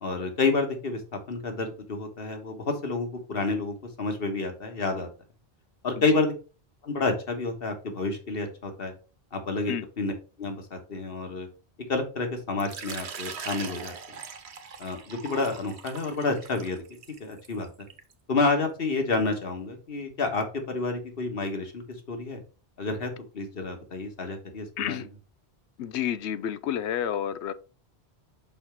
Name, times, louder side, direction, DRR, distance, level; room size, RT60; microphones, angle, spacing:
voice 1, 0.0-5.1 5.8-6.3 6.8-8.9 9.3-10.1 10.4-11.5 11.9-14.2 14.8-16.8 17.2-17.9 18.3-22.4 22.8-25.1, left 3 dB, 60° left, 1.6 m, -29 dB
Water / Liquid, 12.6-18.1, right 6 dB, 80° right, 1.1 m, -41 dB
voice 2, 25.8-27.5, left 10 dB, 85° left, 0.9 m, -30 dB
5.8 x 4.3 x 4.4 m
omnidirectional pair, 1.1 m